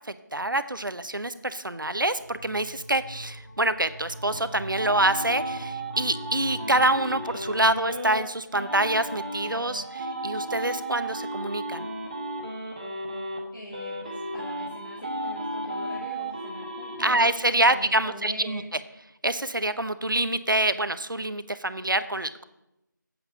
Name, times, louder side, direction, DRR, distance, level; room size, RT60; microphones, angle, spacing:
voice 1, 0.1-11.9 17.0-18.6 19.2-22.4, right 1 dB, 90° right, 12 dB, 0.8 m, -26 dB
sound 1, 2.1-7.8, equal, 45° left, 3.0 m, -43 dB
sound 2, 3.8-8.2 8.5-13.4 13.7-17.2, right 1 dB, 25° right, 1.2 m, -34 dB
voice 2, 13.5-17.3 17.5-18.7, left 1 dB, 85° left, -3 dB, 2.3 m, -42 dB
8.0 x 8.0 x 6.7 m, 0.89 s
figure-of-eight pair, 170°, 11 cm